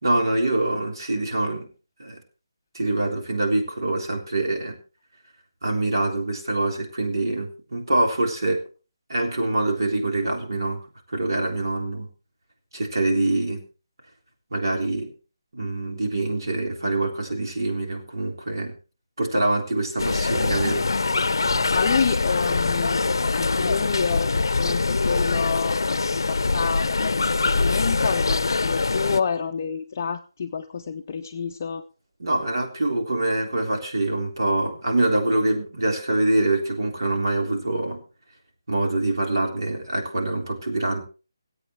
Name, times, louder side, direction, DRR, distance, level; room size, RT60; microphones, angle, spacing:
voice 1, 0.0-1.7 2.0-2.2 2.7-4.8 5.6-8.6 9.1-10.8 11.1-12.1 12.7-13.6 14.5-15.1 15.5-18.7 19.2-20.8 32.2-38.0 38.7-41.0, right 2 dB, 70° right, 2 dB, 3.6 m, -25 dB
sound 1, 20.0-29.2, left 3 dB, 80° left, 0.6 m, -23 dB
voice 2, 21.7-23.0 23.3-31.8, left 6 dB, 25° left, 3 dB, 0.5 m, -28 dB
25.0 x 8.4 x 3.2 m, 0.34 s
hypercardioid pair, 175°, 2 cm